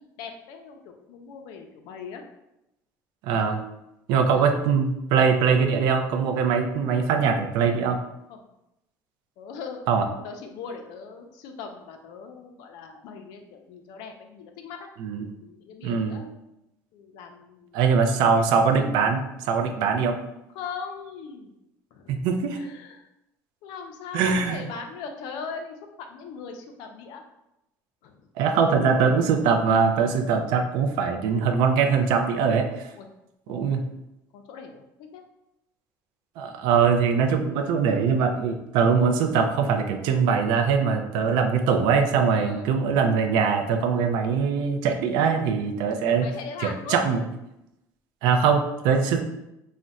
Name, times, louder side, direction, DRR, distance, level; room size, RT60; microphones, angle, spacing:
voice 1, 0.0-2.2 4.3-4.7 8.3-8.4 9.4-9.9 10.2-14.9 15.1-16.3 16.9-18.3 20.5-21.5 21.9-22.2 22.6-23.1 23.6-27.2 28.0-28.3 33.0-33.1 33.5-33.6 34.3-35.2 42.3-42.7 46.2-47.0, left 5 dB, 75° left, 4 dB, 0.4 m, -40 dB
voice 2, 3.2-3.6 4.1-8.0 9.9-10.1 15.0-15.3 15.8-16.2 17.7-20.2 22.1-22.6 24.1-24.6 28.4-32.9 33.5-33.8 36.4-46.3 46.6-47.2 48.2-49.2, right 6 dB, 80° right, 5 dB, 0.4 m, -22 dB
2.4 x 2.1 x 3.9 m, 0.89 s
cardioid pair, 115°, 7 cm